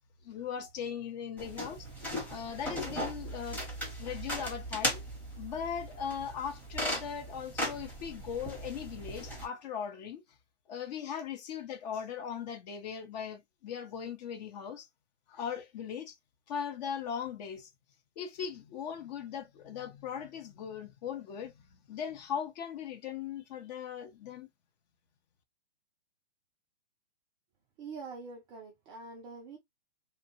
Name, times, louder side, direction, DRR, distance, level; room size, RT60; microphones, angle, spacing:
voice 1, 0.2-1.9 2.3-3.6 4.0-5.0 5.4-10.2 10.7-14.9 15.3-16.2 16.5-17.7 18.2-24.5, left 7 dB, 40° left, 0.7 m, -39 dB
sound 1, 1.4-9.5, equal, 5° left, 1.0 m, -38 dB
voice 2, 27.8-29.6, right 4 dB, 15° right, 0.3 m, -45 dB
2.7 x 2.2 x 2.9 m
hypercardioid pair, 125°, 34 cm